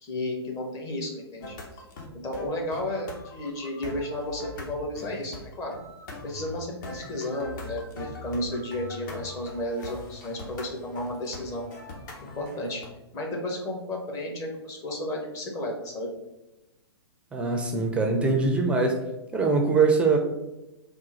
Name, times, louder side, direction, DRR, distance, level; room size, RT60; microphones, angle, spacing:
voice 1, 0.0-1.6 2.2-5.8 6.2-11.7 12.3-12.8 13.1-16.1, left 1 dB, 25° left, 0 dB, 0.9 m, -33 dB
sound 1, 1.4-12.9, left 2 dB, 45° left, 0.9 m, -41 dB
voice 2, 17.3-19.0 19.3-20.2, right 4 dB, 10° right, 2 dB, 0.5 m, -22 dB
3.6 x 2.5 x 4.1 m, 0.96 s
figure-of-eight pair, 115°, 14 cm